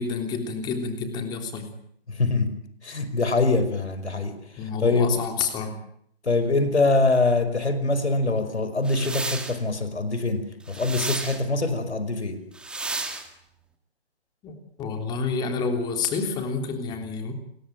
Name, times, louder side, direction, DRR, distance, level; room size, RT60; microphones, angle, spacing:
voice 1, 0.0-1.7 4.6-5.8 14.4-17.3, left 5 dB, 15° left, 5 dB, 3.3 m, -29 dB
voice 2, 2.1-5.1 6.2-12.4, left 3 dB, 80° left, 11 dB, 5.3 m, -24 dB
sound 1, 8.8-9.6 10.7-11.4 12.5-13.3, right 3 dB, 5° right, 1.9 m, -32 dB
28.0 x 22.0 x 9.2 m, 0.70 s
hypercardioid pair, 155°, 33 cm